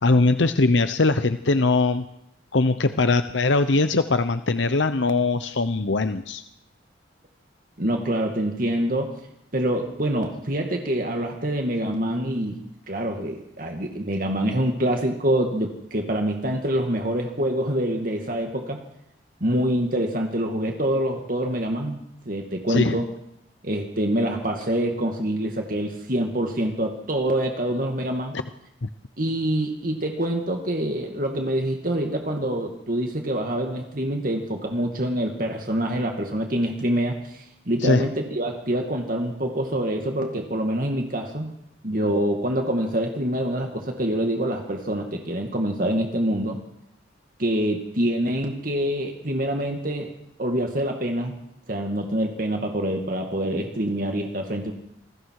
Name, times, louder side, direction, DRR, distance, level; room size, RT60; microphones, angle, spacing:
voice 1, 0.0-2.1 2.5-6.4 22.7-23.0 28.8-28.9 37.8-38.1, left 3 dB, 90° left, 10 dB, 0.9 m, -21 dB
voice 2, 7.8-9.1 9.5-18.8 19.4-22.0 22.3-23.1 23.6-28.4 29.2-41.5 41.8-46.6 47.4-50.1 50.4-51.3 51.7-54.7, right 1 dB, 50° right, 3 dB, 2.3 m, -26 dB
28.0 x 21.0 x 4.8 m, 0.81 s
head